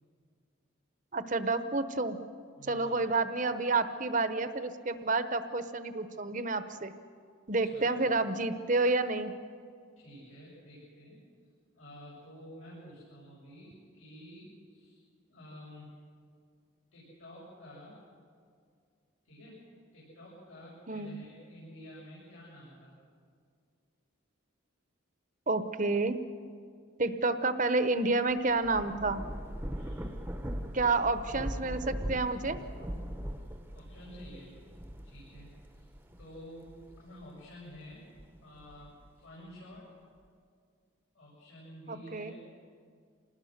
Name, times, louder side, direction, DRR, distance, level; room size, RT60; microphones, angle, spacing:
voice 1, 1.1-2.2 2.7-6.9 7.5-9.3 20.9-21.1 25.5-26.2 27.0-29.2 30.7-32.6 42.1-42.3, right 3 dB, 40° right, 10 dB, 0.9 m, -29 dB
voice 2, 2.5-3.0 7.6-8.1 10.0-11.2 11.7-15.0 15.3-15.9 16.9-18.0 19.2-19.6 19.9-22.9 29.6-30.1 33.7-34.6 35.0-35.9 36.2-38.1 38.4-39.9 41.1-42.4, equal, 80° left, -7 dB, 7.6 m, -50 dB
Thunder / Rain, 28.3-37.2 37.7-39.1, equal, 10° right, 0.9 m, -40 dB
26.5 x 20.0 x 6.7 m, 2.2 s
head